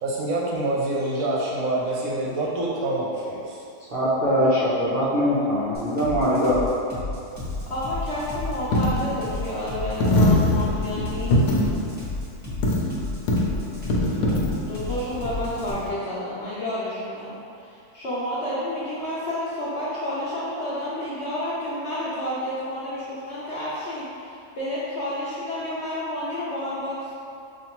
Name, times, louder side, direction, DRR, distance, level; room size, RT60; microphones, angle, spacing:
voice 1, 0.0-3.6, right 2 dB, 70° right, -4 dB, 0.9 m, -26 dB
voice 2, 3.9-6.6, equal, 90° right, -10 dB, 0.4 m, -22 dB
sound 1, 5.7-15.7, left 2 dB, 10° right, 0.6 m, -32 dB
Coin (dropping), 7.4-15.9, left 1 dB, 90° left, 1.2 m, -24 dB
voice 3, 7.7-11.5 14.2-14.4 14.7-27.2, left 1 dB, 65° left, -9 dB, 0.6 m, -30 dB
5.0 x 2.5 x 2.9 m, 2.6 s
omnidirectional pair, 1.7 m